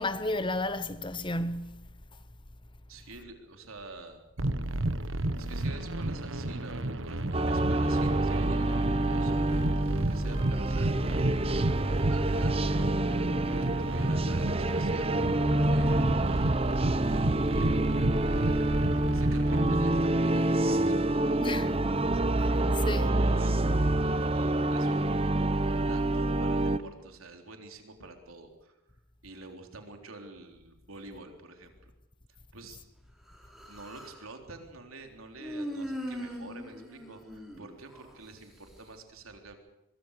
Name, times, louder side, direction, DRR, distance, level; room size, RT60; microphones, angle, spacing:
voice 1, 0.0-1.9 21.4-21.7 22.9-23.0, left 2 dB, 25° left, 0.9 m, -32 dB
voice 2, 2.9-4.2 5.4-10.9 12.1-12.9 13.6-15.2 15.7-16.4 17.5-17.8 18.3-22.5 22.8-23.7 24.0-25.4 25.7-28.8 29.2-31.9 32.5-32.8 33.7-39.6, right 3 dB, 85° right, 3.8 m, -48 dB
sound 1, 4.4-19.7, right 1 dB, 70° right, 1.5 m, -32 dB
sound 2, 7.3-26.8, right 1 dB, 30° right, 0.8 m, -27 dB
Human voice, 33.3-34.2 35.4-38.1, equal, ahead, 5.2 m, -40 dB
23.0 x 22.5 x 6.7 m
head